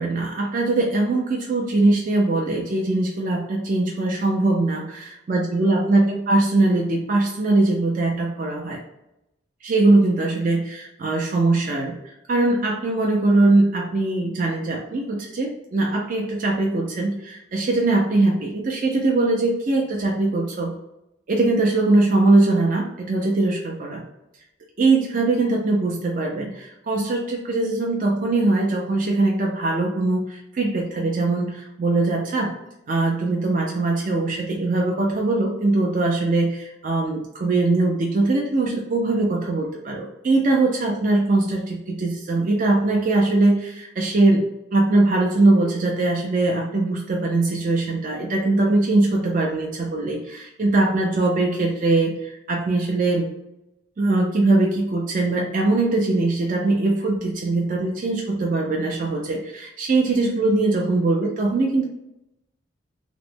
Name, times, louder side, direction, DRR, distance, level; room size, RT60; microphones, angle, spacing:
voice 1, 0.0-5.0 5.3-8.8 9.6-11.9 12.3-20.7 21.3-24.0 24.8-32.5 32.9-44.4 44.7-53.3 54.0-61.8, right 2 dB, 40° right, -1 dB, 0.4 m, -21 dB
3.0 x 2.1 x 3.3 m, 0.87 s
head